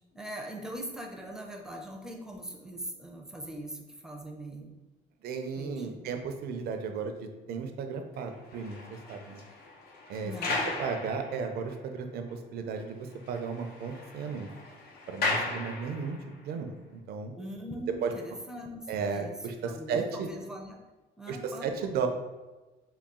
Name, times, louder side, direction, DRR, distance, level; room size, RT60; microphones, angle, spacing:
voice 1, 0.0-4.8 5.6-6.0 10.2-10.7 17.3-19.3 19.7-20.8 21.2-21.9, right 1 dB, 5° right, 1 dB, 0.5 m, -41 dB
voice 2, 5.2-9.4 10.1-10.3 10.8-14.5 15.1-16.2 16.4-17.3 18.0-18.1 18.9-20.3 21.3-22.1, right 5 dB, 70° right, 5 dB, 0.5 m, -34 dB
sound 1, 8.3-11.8 12.3-12.4 12.8-12.9 13.1-16.4, left 2 dB, 70° left, 0.8 m, -36 dB
3.9 x 2.3 x 3.6 m, 1.2 s
cardioid pair, 110°, 17 cm